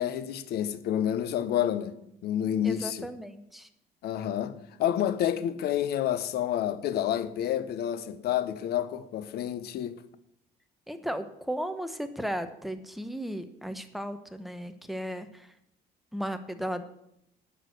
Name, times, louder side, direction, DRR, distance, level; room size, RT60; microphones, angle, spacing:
voice 1, 0.0-1.9 2.2-3.1 4.0-10.0, left 10 dB, 70° left, 0.9 m, -29 dB
voice 2, 2.6-3.7 10.9-15.5 16.1-16.8, equal, ahead, 1.0 m, -35 dB
10.0 x 6.3 x 7.8 m
cardioid pair, 110°, 17 cm